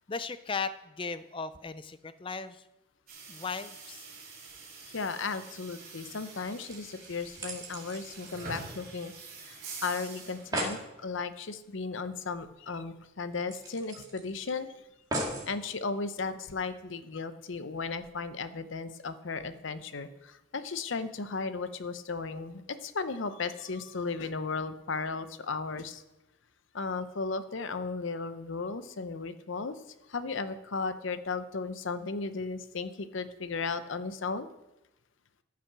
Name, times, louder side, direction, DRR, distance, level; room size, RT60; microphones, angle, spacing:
voice 1, 0.1-2.6 3.3-4.1, left 4 dB, 25° left, 13 dB, 0.4 m, -37 dB
sound 1, 3.1-10.8, right 4 dB, 45° right, 3.9 m, -46 dB
voice 2, 4.8-9.1 9.5-14.8 15.5-26.0 26.7-29.8 30.1-34.5, left 4 dB, 65° left, 12 dB, 0.7 m, -35 dB
sound 2, 6.7-9.3 9.6-9.7 10.0-10.1 10.3-10.8 12.3-12.4 12.8-12.9 13.5-14.5 15.1-15.5 16.2-16.3, right 1 dB, 20° right, 1.8 m, -37 dB
13.5 x 5.9 x 6.1 m, 0.95 s
head